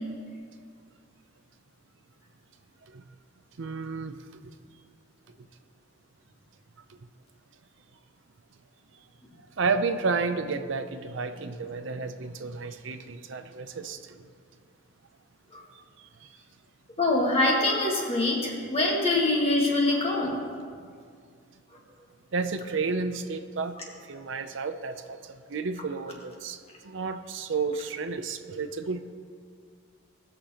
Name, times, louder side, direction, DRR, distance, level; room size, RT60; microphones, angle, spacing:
voice 1, 3.6-4.2 9.6-14.2 16.2-16.3 20.8-20.9 22.3-23.8 24.1-29.0, right 4 dB, 75° right, 9 dB, 0.5 m, -31 dB
voice 2, 17.0-20.4, left 2 dB, 30° left, -2 dB, 1.7 m, -24 dB
18.5 x 6.6 x 2.9 m, 2.1 s
head